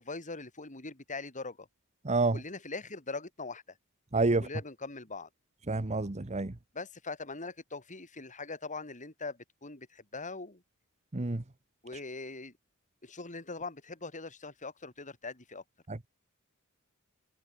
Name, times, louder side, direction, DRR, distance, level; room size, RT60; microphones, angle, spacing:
voice 1, 0.0-1.7 2.3-3.8 4.4-5.3 6.7-10.6 11.8-12.5 13.0-15.6, left 3 dB, 35° left, 4.0 m, -41 dB
voice 2, 2.0-2.4 4.1-4.4 5.7-6.5 11.1-11.4, right 3 dB, 30° right, 1.1 m, -28 dB
head